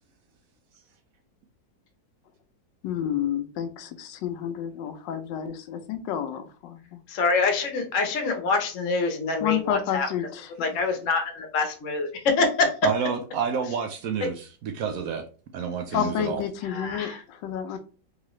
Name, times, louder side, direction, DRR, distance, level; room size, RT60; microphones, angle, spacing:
voice 1, 2.8-7.0 9.4-10.7 15.9-17.8, left 9 dB, 80° left, 8 dB, 1.3 m, -30 dB
voice 2, 7.1-10.1 10.6-12.7 16.7-17.2, left 3 dB, 55° left, 4 dB, 1.0 m, -25 dB
voice 3, 12.8-14.3 14.6-15.3 15.5-16.4, right 6 dB, 75° right, 6 dB, 0.8 m, -28 dB
3.7 x 3.2 x 3.1 m, 0.37 s
omnidirectional pair, 2.0 m